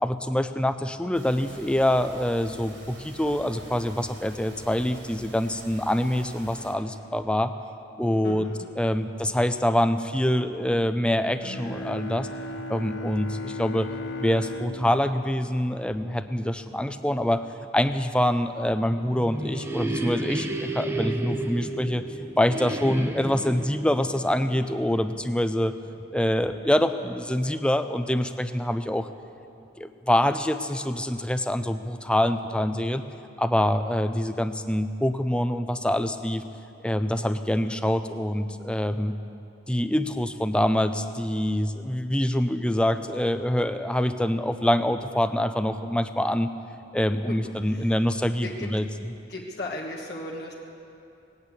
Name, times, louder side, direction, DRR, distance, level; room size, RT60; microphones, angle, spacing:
voice 1, 0.0-7.5 8.0-8.5 8.8-12.3 12.7-13.9 14.2-17.4 17.7-22.0 22.4-25.7 26.1-29.1 29.8-33.0 33.4-36.4 36.8-39.1 39.7-46.5 46.9-48.8, left 1 dB, 5° left, 10 dB, 0.5 m, -25 dB
sound 1, 1.1-6.7, right 1 dB, 85° right, 3.9 m, -46 dB
voice 2, 8.2-8.8 47.3-47.4 47.6-48.0 48.4-48.7 49.3-50.5, left 1 dB, 60° left, -2 dB, 1.3 m, -36 dB
Bowed string instrument, 11.4-16.5, left 2 dB, 90° left, 1.0 m, -37 dB
sound 2, 18.8-25.5, right 2 dB, 15° right, 0.9 m, -32 dB
19.5 x 8.9 x 8.2 m, 2.7 s
head